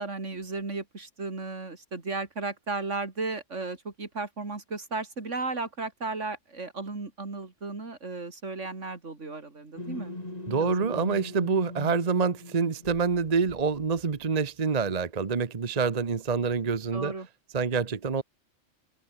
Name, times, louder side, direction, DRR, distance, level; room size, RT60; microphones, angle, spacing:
voice 1, 0.0-10.1 10.6-11.0 16.9-17.3, right 3 dB, 75° right, 3.4 m, -35 dB
sound 1, 9.8-14.5, left 2 dB, 30° left, 3.6 m, -42 dB
voice 2, 10.5-17.1 17.5-18.2, right 5 dB, 35° right, 1.0 m, -26 dB
open air
omnidirectional pair, 1.3 m